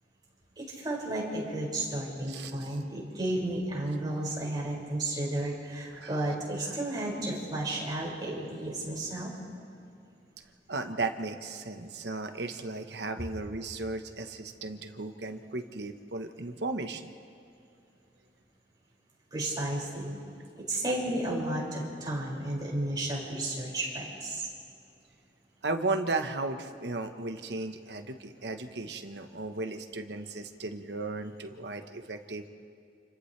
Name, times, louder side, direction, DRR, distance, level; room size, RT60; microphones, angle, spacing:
voice 1, 0.6-9.3 19.3-20.2 20.6-24.5, right 1 dB, 25° right, -5 dB, 5.9 m, -33 dB
voice 2, 2.3-2.7 5.9-6.1 10.7-17.1 25.6-32.5, right 3 dB, 70° right, 6 dB, 1.2 m, -35 dB
29.5 x 28.5 x 3.4 m, 2.6 s
head